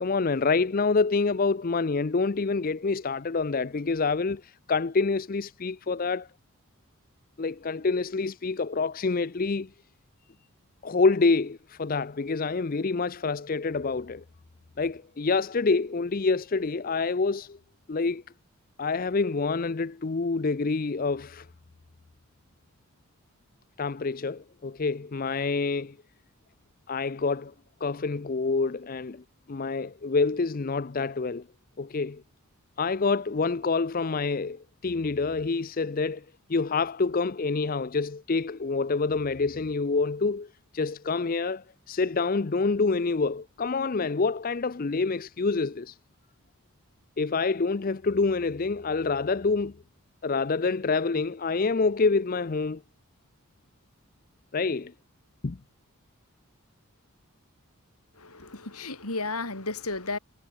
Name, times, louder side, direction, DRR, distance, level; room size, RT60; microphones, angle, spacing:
voice 1, 0.0-6.3 7.4-9.7 10.8-14.2 14.8-17.6 17.9-18.2 18.8-21.5 23.8-26.0 26.9-27.5 27.8-31.5 31.8-32.2 32.8-36.2 36.5-46.0 47.2-49.7 50.2-52.8 54.5-54.9 55.4-55.6, left 4 dB, 40° left, 0.5 m, -27 dB
voice 2, 58.2-60.2, left 3 dB, 80° left, 6.8 m, -33 dB
head